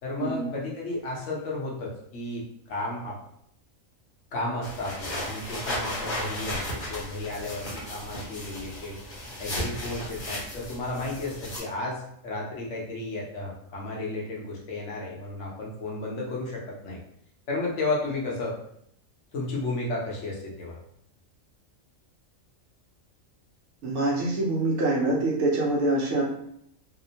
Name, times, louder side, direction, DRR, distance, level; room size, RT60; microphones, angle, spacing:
voice 1, 0.0-3.2 4.3-9.0 9.4-17.0 17.5-18.6 19.3-20.8, left 2 dB, 65° left, -3 dB, 0.9 m, -33 dB
sound 1, 4.6-11.6, left 1 dB, 40° left, 0.8 m, -35 dB
voice 2, 23.8-26.2, right 2 dB, 65° right, -2 dB, 0.9 m, -25 dB
2.7 x 2.0 x 2.7 m, 0.73 s
omnidirectional pair, 1.4 m